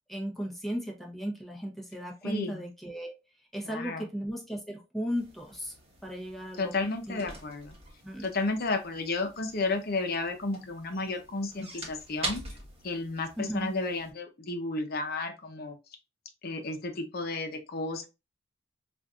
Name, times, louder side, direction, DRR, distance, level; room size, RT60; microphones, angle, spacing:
voice 1, 0.1-3.2 3.5-5.8 6.0-6.7 7.1-7.3 8.0-8.3 13.4-13.7, equal, ahead, 0 dB, 0.9 m, -35 dB
voice 2, 2.2-2.7 3.6-4.1 6.6-7.8 8.2-12.4 12.8-15.8 16.4-18.1, left 3 dB, 50° left, 5 dB, 0.8 m, -32 dB
sound 1, 5.2-14.1, right 2 dB, 30° right, 1.2 m, -44 dB
5.0 x 2.5 x 2.4 m, 0.27 s
head